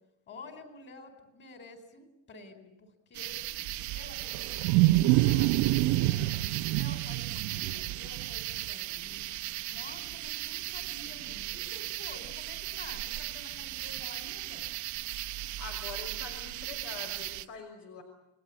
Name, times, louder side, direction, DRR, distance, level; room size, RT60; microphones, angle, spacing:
voice 1, 0.3-3.4 3.9-9.2 9.7-14.7, left 3 dB, 30° left, 8 dB, 4.6 m, -50 dB
sound 1, 3.1-17.5, right 15 dB, 55° right, 1.0 m, -37 dB
Wild animals, 3.7-8.7, right 17 dB, 80° right, 1.0 m, -26 dB
voice 2, 15.6-18.0, left 5 dB, 70° left, 4 dB, 6.0 m, -44 dB
29.5 x 21.0 x 8.7 m, 0.85 s
cardioid pair, 170°, 36 cm